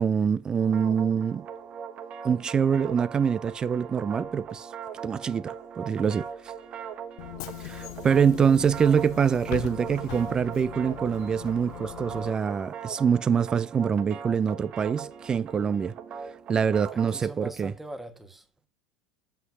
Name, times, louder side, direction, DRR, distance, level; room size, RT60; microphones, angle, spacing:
voice 1, 0.0-1.5 2.2-4.7 5.0-6.3 7.6-15.9 16.5-17.7, right 7 dB, 25° right, 0.5 m, -25 dB
sound 1, 0.6-17.3, right 7 dB, 40° right, 1.3 m, -40 dB
Bus / Engine, 7.2-12.3, left 19 dB, 60° left, 0.4 m, -40 dB
sound 2, 8.0-13.1, left 2 dB, 10° left, 1.1 m, -50 dB
voice 2, 16.9-18.7, right 1 dB, 5° right, 1.5 m, -42 dB
7.7 x 5.8 x 5.8 m
figure-of-eight pair, 75°, 3 cm